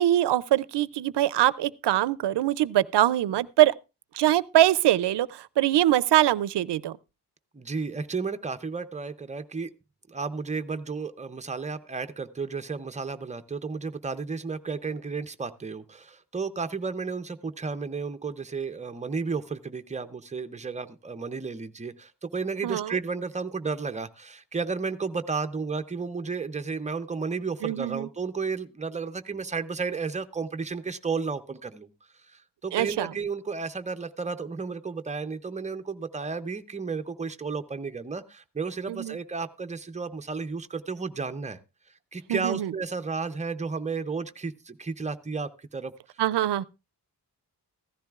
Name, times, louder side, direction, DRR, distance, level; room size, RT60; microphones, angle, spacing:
voice 1, 0.0-3.7 4.1-7.0 22.6-23.0 27.6-28.1 32.7-33.1 38.9-39.2 42.3-42.7 46.2-46.6, right 13 dB, 80° right, 0.5 m, -23 dB
voice 2, 7.5-9.7 10.1-31.9 32.3-41.6 42.1-45.9, right 4 dB, 15° right, 0.6 m, -33 dB
15.5 x 14.0 x 2.4 m
wide cardioid pair, 130°, 41 cm